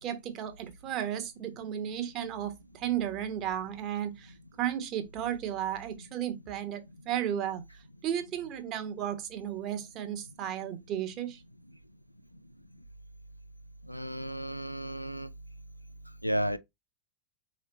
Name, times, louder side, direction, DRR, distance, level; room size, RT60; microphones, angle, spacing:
voice 1, 0.0-7.6 8.0-11.4, right 10 dB, 35° right, 1.0 m, -34 dB
voice 2, 13.9-15.3 16.2-16.6, right 1 dB, 90° left, 0.4 m, -33 dB
4.9 x 3.2 x 2.9 m
figure-of-eight pair, 90°, 0 cm